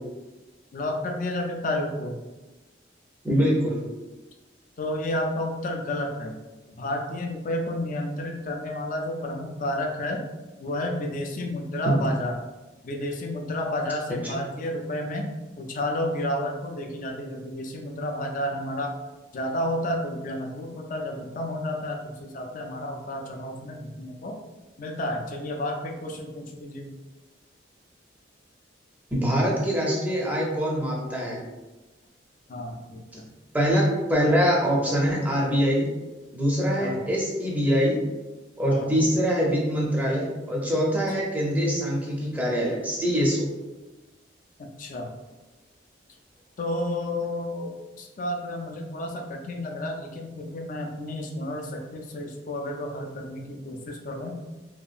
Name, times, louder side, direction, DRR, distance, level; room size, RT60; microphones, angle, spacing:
voice 1, 0.7-2.2 4.8-6.3 6.8-10.2 10.6-12.4 12.8-19.0 19.3-24.4 24.8-27.0 32.5-33.3 36.8-37.1 38.6-39.1 44.8-45.1 46.6-54.4, left 1 dB, 45° left, 2 dB, 0.4 m, -31 dB
voice 2, 3.2-3.8 11.9-12.0 29.1-31.4 33.5-35.9 36.3-38.0 38.6-43.5, equal, 10° right, -4 dB, 0.5 m, -24 dB
2.7 x 2.3 x 2.4 m, 1.1 s
head